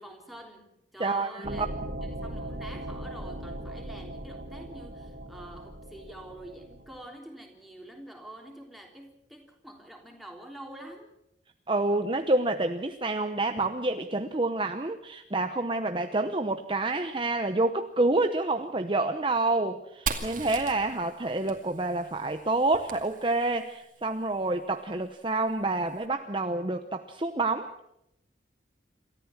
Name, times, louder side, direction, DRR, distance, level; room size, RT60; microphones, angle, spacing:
voice 1, 0.0-1.7 2.0-11.1, right 1 dB, ahead, 1 dB, 3.5 m, -47 dB
voice 2, 1.0-1.7 11.7-27.7, right 2 dB, 30° right, 7 dB, 0.8 m, -28 dB
sound 1, 1.4-7.0, right 1 dB, 70° right, 3.0 m, -39 dB
Fire, 20.1-23.7, right 5 dB, 45° right, 2.5 m, -38 dB
28.0 x 14.0 x 7.3 m, 0.81 s
head